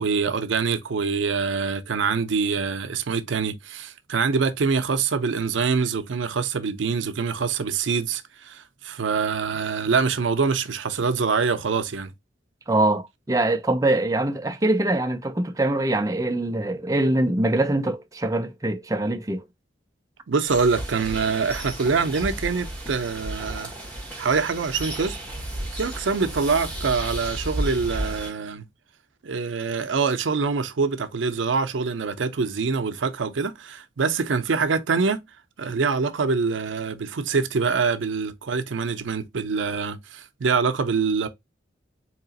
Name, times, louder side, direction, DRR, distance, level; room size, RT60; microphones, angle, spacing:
voice 1, 0.0-12.1 20.3-23.7 24.2-25.2 25.7-28.6 29.2-35.2 35.6-41.3, right 5 dB, 85° right, 0.5 m, -25 dB
voice 2, 12.7-19.4, right 2 dB, 15° right, 0.4 m, -23 dB
sound 1, 20.5-28.3, right 1 dB, 5° left, 1.3 m, -33 dB
3.9 x 2.9 x 2.7 m
head